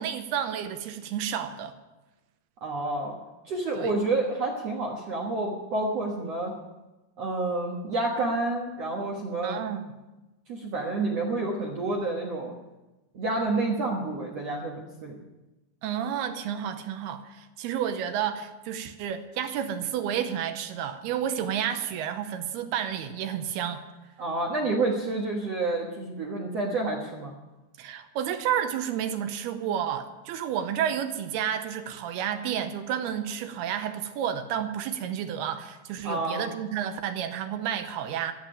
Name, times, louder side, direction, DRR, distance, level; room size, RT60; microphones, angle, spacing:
voice 1, 0.0-1.7 3.8-3.9 9.4-9.9 15.8-23.8 27.8-38.3, right 9 dB, 80° right, 8 dB, 2.7 m, -31 dB
voice 2, 2.6-3.1 3.5-6.5 7.2-9.6 10.5-12.5 13.1-15.2 24.2-27.3 36.0-36.5, right 2 dB, 60° right, -1 dB, 1.7 m, -29 dB
14.0 x 7.4 x 10.0 m, 1.1 s
omnidirectional pair, 4.9 m